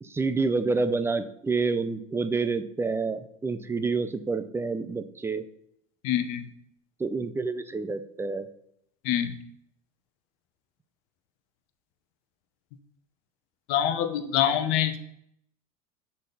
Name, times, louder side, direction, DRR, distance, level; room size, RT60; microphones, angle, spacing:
voice 1, 0.0-5.4 7.0-8.5, right 4 dB, 15° right, 11 dB, 0.6 m, -28 dB
voice 2, 6.0-6.5 9.0-9.3 13.7-15.0, left 10 dB, 60° left, 9 dB, 0.9 m, -25 dB
6.3 x 4.2 x 5.5 m, 0.73 s
hypercardioid pair, 85°, 19 cm